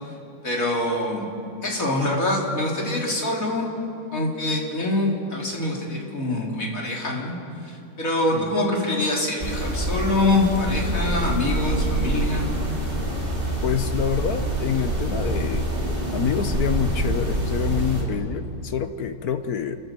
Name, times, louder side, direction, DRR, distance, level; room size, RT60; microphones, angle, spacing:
voice 1, 0.4-1.3 1.6-3.7 4.1-7.3 7.6-12.5, left 2 dB, 40° left, -2 dB, 3.7 m, -24 dB
sound 1, 9.4-18.0, right 1 dB, 25° right, 3.7 m, -26 dB
voice 2, 13.6-15.7 16.1-19.8, left 7 dB, 60° left, 9 dB, 1.1 m, -27 dB
28.0 x 13.0 x 7.5 m, 2.7 s
omnidirectional pair, 2.3 m